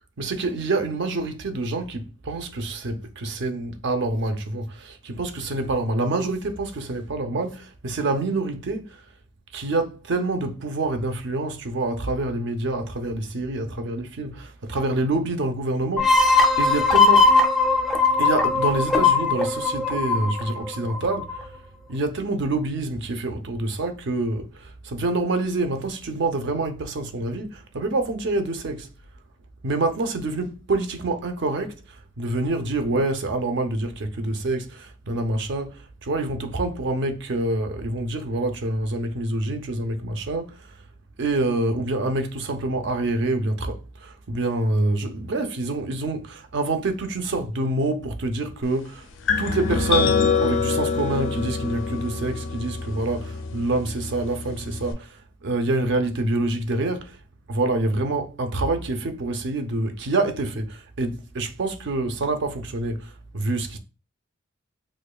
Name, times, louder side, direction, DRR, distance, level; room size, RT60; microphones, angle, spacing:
voice 1, 0.2-9.0 9.5-17.3 18.2-21.5 21.9-28.9 29.6-40.8 41.2-49.1 49.4-57.2 57.5-63.8, right 2 dB, 60° right, 0.5 m, -27 dB
sound 1, 16.0-21.4, left 3 dB, ahead, 0.4 m, -19 dB
sound 2, 49.3-54.9, left 5 dB, 65° left, 0.4 m, -25 dB
4.8 x 2.2 x 2.3 m
head